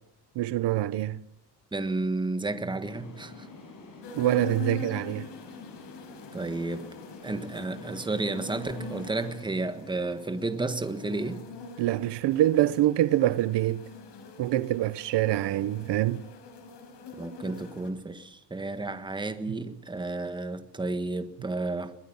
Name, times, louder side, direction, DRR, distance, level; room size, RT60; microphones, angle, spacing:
voice 1, 0.4-1.2 4.1-5.3 11.8-13.8 14.4-16.2, right 14 dB, 90° right, 1.0 m, -25 dB
voice 2, 1.7-3.5 6.3-6.9 7.2-11.5 17.2-21.9, right 2 dB, 10° right, 1.5 m, -32 dB
sound 1, 2.8-9.3, left 3 dB, 50° left, 7.7 m, -47 dB
sound 2, 4.0-17.9, left 5 dB, 85° left, 5.3 m, -44 dB
22.5 x 21.0 x 7.2 m
cardioid pair, 160°, 41 cm